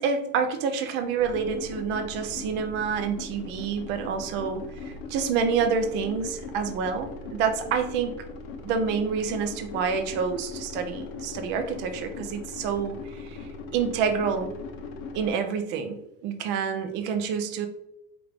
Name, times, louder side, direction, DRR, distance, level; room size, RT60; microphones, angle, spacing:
voice 1, 0.0-8.1 8.6-14.5 15.1-17.7, right 6 dB, 40° right, 7 dB, 0.5 m, -28 dB
sound 1, 1.2-15.3, left 4 dB, 75° left, 0.8 m, -40 dB
4.8 x 2.5 x 3.3 m, 0.87 s
cardioid pair, 180°, 29 cm